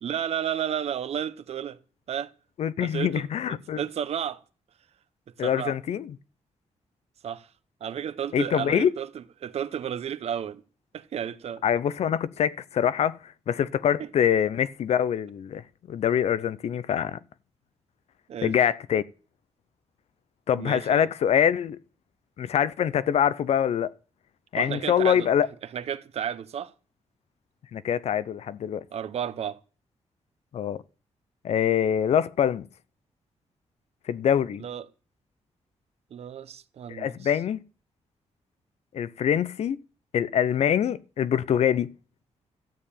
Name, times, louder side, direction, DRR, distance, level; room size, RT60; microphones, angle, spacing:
voice 1, 0.0-1.8 2.1-2.3 2.8-3.2 3.5-4.4 5.4-5.8 7.2-7.5 7.8-10.6 10.9-11.6 14.0-14.1 18.3-18.6 20.6-21.1 24.5-25.3 25.7-26.7 28.9-29.6 34.6-34.8 36.1-37.3, right 9 dB, 60° right, 0.9 m, -32 dB
voice 2, 2.6-3.8 5.4-6.1 8.3-8.9 11.6-13.2 13.5-15.6 15.9-17.2 18.4-19.0 20.5-21.8 22.4-23.9 24.5-25.5 27.7-28.8 30.5-30.8 31.4-32.7 34.1-34.6 36.9-37.6 38.9-39.8 40.1-41.9, left 9 dB, 65° left, 0.6 m, -24 dB
13.5 x 6.8 x 8.7 m
wide cardioid pair, 165°, 12 cm